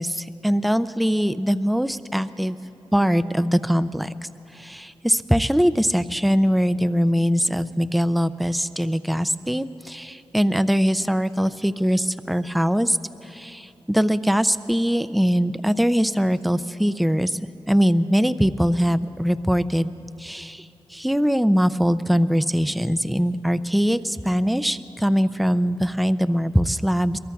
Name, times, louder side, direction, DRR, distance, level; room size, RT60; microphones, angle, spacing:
voice 1, 0.0-2.6 2.9-13.0 13.2-17.4 17.7-19.9 20.2-27.2, equal, ahead, 13 dB, 0.3 m, -22 dB
23.5 x 22.0 x 2.3 m, 2.8 s
wide cardioid pair, 90°, 10 cm